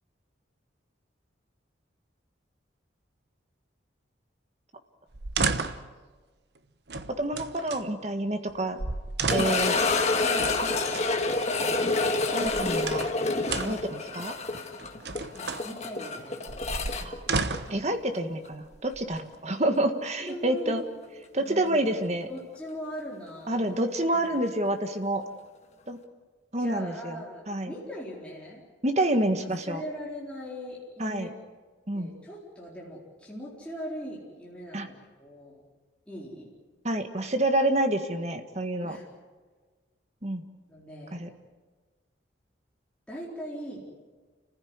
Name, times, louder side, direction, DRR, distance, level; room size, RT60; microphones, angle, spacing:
sound 1, 5.1-5.9 6.9-7.8 8.5-8.6 8.8-9.7 10.4-11.1 12.2-13.2 13.5-13.9 14.8-15.7 16.5-17.8 18.7-19.4, right 4 dB, 60° right, 1.1 m, -32 dB
voice 1, 7.2-8.8 9.3-9.8 12.3-13.1 13.6-14.3 17.0-17.2 17.7-20.8 21.3-22.3 23.5-25.2 25.9-26.0 26.5-27.7 28.8-29.8 31.0-31.3 31.9-32.1 34.7-34.9 36.8-39.0 40.2-40.4 41.1-41.3, right 1 dB, 35° right, 7 dB, 1.6 m, -28 dB
sound 2, 9.3-18.2 18.4-18.5 19.2-19.3 21.9-22.0, left 3 dB, 35° left, 1.8 m, -28 dB
voice 2, 10.2-10.5 12.5-12.7 13.6-13.9 15.3-16.5 20.2-21.9 22.3-23.8 24.1-24.3 26.6-28.6 29.6-31.3 31.9-35.6 36.1-36.5 38.8-39.0 40.7-41.3 43.1-43.9, equal, 5° left, -5 dB, 4.0 m, -40 dB
28.5 x 15.5 x 9.6 m, 1.4 s
head